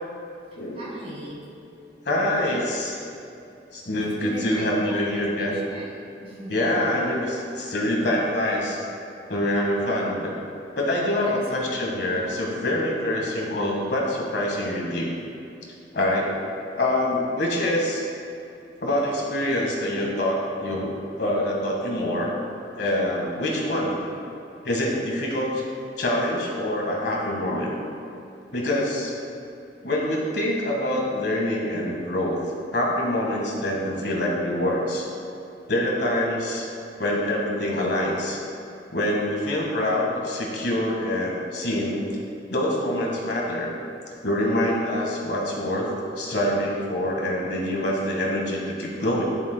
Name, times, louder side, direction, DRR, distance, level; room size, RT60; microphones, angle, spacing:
voice 1, 0.7-1.4 4.0-6.6 11.2-11.8 12.6-12.8, right 1 dB, 35° right, -5 dB, 1.8 m, -40 dB
voice 2, 2.0-3.0 3.7-5.6 6.5-8.8 9.3-10.3 10.8-15.1 15.9-16.3 16.7-18.0 18.8-20.9 21.2-22.3 22.8-24.0 24.6-25.6 26.0-27.7 28.5-29.1 29.8-32.4 32.7-35.1 35.7-36.7 37.0-38.4 38.9-42.0 42.5-43.7 44.2-49.2, left 1 dB, 65° left, -2 dB, 1.6 m, -25 dB
11.5 x 7.0 x 2.2 m, 2.7 s
head